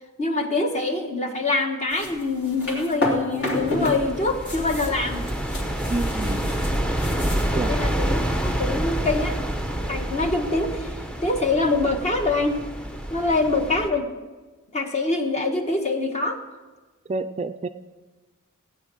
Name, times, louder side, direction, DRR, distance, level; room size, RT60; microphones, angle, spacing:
voice 1, 0.2-5.2 7.6-9.4 9.9-12.6 13.1-14.1 14.7-16.4, left 2 dB, 30° left, 4 dB, 1.5 m, -24 dB
sound 1, 1.9-4.0 4.3-7.5, left 1 dB, 50° left, 3.0 m, -30 dB
sound 2, 3.6-13.9, right 1 dB, 5° left, 0.8 m, -28 dB
voice 2, 5.9-6.5 7.5-7.7 17.1-17.7, right 3 dB, 30° right, 9 dB, 0.4 m, -28 dB
16.5 x 9.7 x 6.3 m, 1.3 s
head